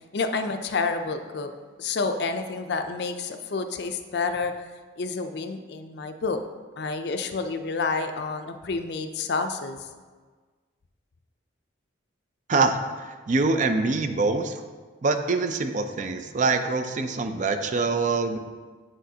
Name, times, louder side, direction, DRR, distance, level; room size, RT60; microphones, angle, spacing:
voice 1, 0.1-1.5 1.8-4.5 5.0-6.4 6.8-9.9, left 4 dB, 55° left, 8 dB, 0.4 m, -29 dB
voice 2, 12.5-14.6 15.0-18.4, right 3 dB, 40° right, 8 dB, 0.4 m, -24 dB
7.7 x 6.1 x 2.7 m, 1.4 s
head